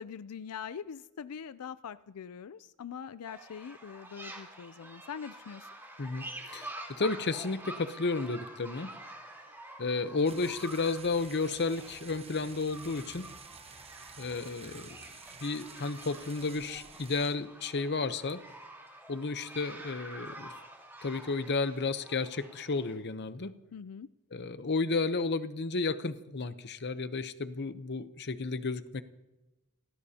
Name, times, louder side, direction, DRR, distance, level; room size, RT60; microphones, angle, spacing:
voice 1, 0.0-5.7 23.7-24.1, left 7 dB, 85° left, 14 dB, 0.4 m, -43 dB
sound 1, 3.2-22.9, right 1 dB, 10° right, 3.6 m, -48 dB
voice 2, 6.0-8.9 9.8-13.3 14.2-15.1 15.4-18.4 19.1-20.6 21.0-23.5 24.3-29.0, left 3 dB, 50° left, 12 dB, 0.8 m, -32 dB
sound 2, 10.3-17.4, right 5 dB, 25° right, 1.1 m, -51 dB
30.0 x 16.0 x 2.9 m, 1.0 s
head